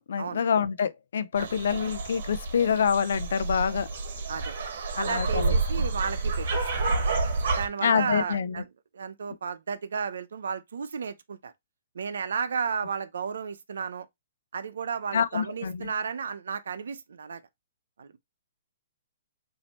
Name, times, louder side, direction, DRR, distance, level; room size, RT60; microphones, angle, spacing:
voice 1, 0.0-3.9 5.0-5.5 7.8-8.5 15.1-15.9, left 7 dB, 75° left, 0.5 m, -26 dB
sound 1, 1.4-7.7, right 3 dB, 60° right, 1.3 m, -29 dB
voice 2, 5.0-6.5 7.6-8.7 8.9-11.5 11.9-14.1 14.5-17.4 18.0-18.2, right 6 dB, 80° right, 0.7 m, -33 dB
4.3 x 2.8 x 4.3 m
hypercardioid pair, 145°, 0 cm